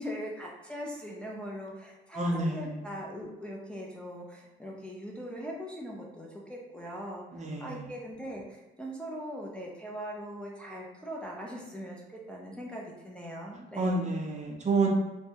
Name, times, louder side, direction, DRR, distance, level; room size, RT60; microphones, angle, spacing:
voice 1, 0.0-7.2 7.6-14.1, equal, 5° left, -4 dB, 0.5 m, -40 dB
voice 2, 2.2-2.7 7.3-7.8 13.8-14.9, right 3 dB, 35° right, 0 dB, 0.6 m, -29 dB
2.7 x 2.2 x 2.8 m, 1.1 s
cardioid pair, 90°, 20 cm